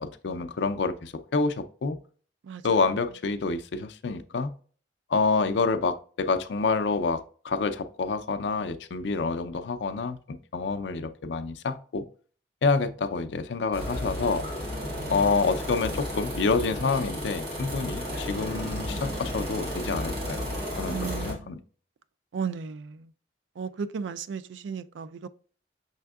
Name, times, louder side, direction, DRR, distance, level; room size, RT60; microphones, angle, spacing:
voice 1, 0.0-2.0 2.6-4.5 5.1-12.1 12.6-14.4 15.1-21.6, left 4 dB, 80° left, 0.5 m, -28 dB
sound 1, 13.7-21.3, equal, 55° right, 1.6 m, -33 dB
voice 2, 20.9-21.6 22.3-23.1 23.6-25.3, right 6 dB, 90° right, 0.4 m, -35 dB
5.6 x 3.5 x 2.3 m
head